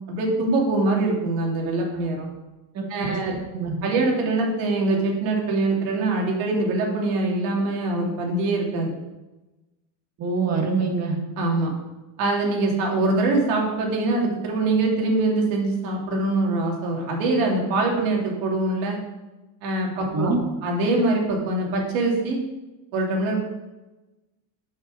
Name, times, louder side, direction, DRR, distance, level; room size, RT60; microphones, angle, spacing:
voice 1, 0.1-2.3 2.9-3.4 3.8-9.0 11.4-11.7 12.2-19.0 19.6-22.4 22.9-23.4, right 2 dB, 75° right, 0 dB, 2.6 m, -23 dB
voice 2, 2.7-3.8 10.2-11.2 20.1-20.4, right 4 dB, 30° right, 2 dB, 1.6 m, -25 dB
7.4 x 5.6 x 6.5 m, 1.1 s
cardioid pair, 165°, 49 cm